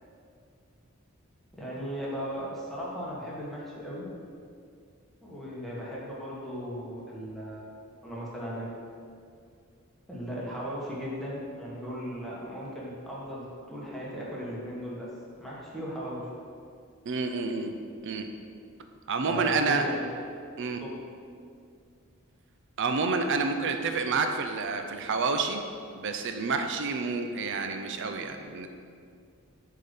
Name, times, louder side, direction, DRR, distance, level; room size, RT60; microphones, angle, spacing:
voice 1, 1.5-4.1 5.2-7.6 8.0-8.8 10.1-15.1 15.4-16.3 19.3-20.0 20.8-21.0, equal, ahead, -6 dB, 1.4 m, -37 dB
voice 2, 17.1-17.7 18.0-18.3 19.1-19.8 20.6-20.8 22.8-25.6 25.9-28.7, right 4 dB, 60° right, 6 dB, 0.5 m, -29 dB
7.4 x 3.7 x 5.5 m, 2.3 s
head